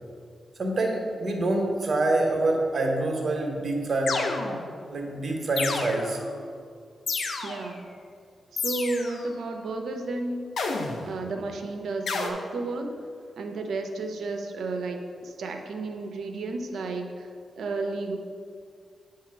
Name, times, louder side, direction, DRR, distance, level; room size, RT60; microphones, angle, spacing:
voice 1, 0.6-4.2 4.9-6.2, right 2 dB, 55° right, 1 dB, 1.1 m, -26 dB
sound 1, 4.1-4.8 5.6-6.3 7.1-7.8 8.6-9.3 10.6-11.2 12.1-12.3, left 4 dB, 75° left, 0.6 m, -30 dB
voice 2, 7.4-7.8 8.5-10.4 11.0-12.9 13.4-17.3 17.6-18.2, right 3 dB, 80° right, 4 dB, 0.6 m, -32 dB
8.3 x 2.8 x 5.8 m, 2.2 s
cardioid pair, 75°, 0 cm